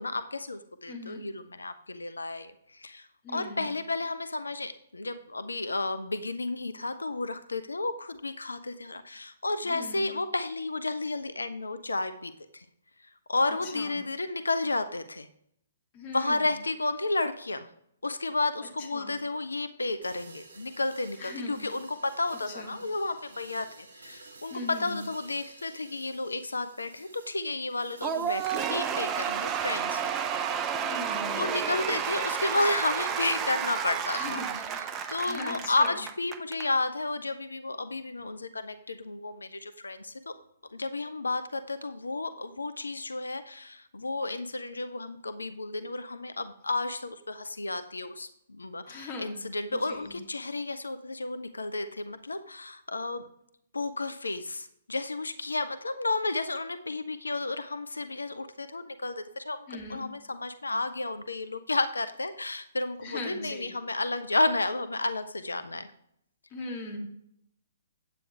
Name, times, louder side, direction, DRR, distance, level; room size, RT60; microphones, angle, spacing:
voice 1, 0.0-12.7 13.0-15.3 16.1-17.7 18.0-23.7 23.9-30.1 31.3-34.4 34.8-40.3 40.7-53.3 53.7-65.9, left 2 dB, 75° left, 11 dB, 0.6 m, -32 dB
voice 2, 0.9-1.2 3.2-3.7 9.6-10.1 13.5-14.0 15.9-16.5 18.9-19.2 21.2-21.7 22.3-22.7 24.5-25.0 30.8-31.4 34.1-36.0 48.9-49.4 49.7-50.1 59.7-60.0 63.0-63.7 66.5-67.0, left 2 dB, 30° left, 1 dB, 2.5 m, -40 dB
sound 1, 20.0-29.9, right 3 dB, 60° right, 2.7 m, -52 dB
Cheering / Applause / Crowd, 28.0-36.7, right 8 dB, 20° right, 0.6 m, -31 dB
9.1 x 8.4 x 3.3 m, 0.72 s
figure-of-eight pair, 125°, 0 cm